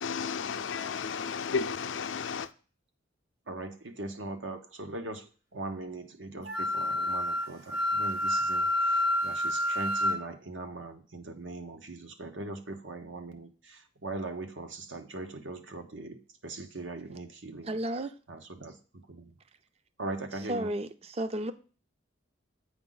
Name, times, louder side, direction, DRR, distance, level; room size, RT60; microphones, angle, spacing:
voice 1, 0.0-2.5, left 5 dB, 85° left, 0.5 m, -33 dB
voice 2, 3.5-17.8 18.3-19.4 20.0-20.7, right 2 dB, 85° right, 1.0 m, -40 dB
Wind instrument woodwind instrument, 6.4-10.2, left 1 dB, 65° right, 1.9 m, -28 dB
voice 3, 17.7-18.2 20.5-21.5, right 1 dB, 30° right, 0.4 m, -32 dB
7.9 x 5.0 x 3.9 m
head